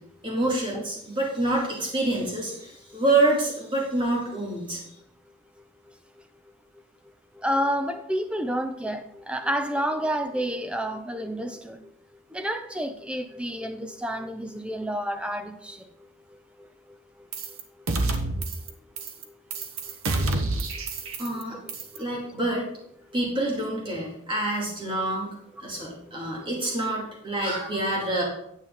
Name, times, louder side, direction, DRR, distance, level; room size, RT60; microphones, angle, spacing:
voice 1, 0.2-4.8 21.2-21.6 22.0-22.6 23.1-25.3 25.6-28.2, right 2 dB, 25° right, 2.4 m, -27 dB
voice 2, 7.4-11.8 12.3-15.9 16.6-16.7 20.2-20.5 21.3-22.0 22.3-22.5 25.8-25.9, equal, 5° right, 0.5 m, -30 dB
sound 1, 17.3-17.6 17.9-18.7 19.0-19.2 19.5-21.4 21.7-22.0, right 2 dB, 80° right, 1.1 m, -28 dB
9.5 x 8.0 x 3.8 m
head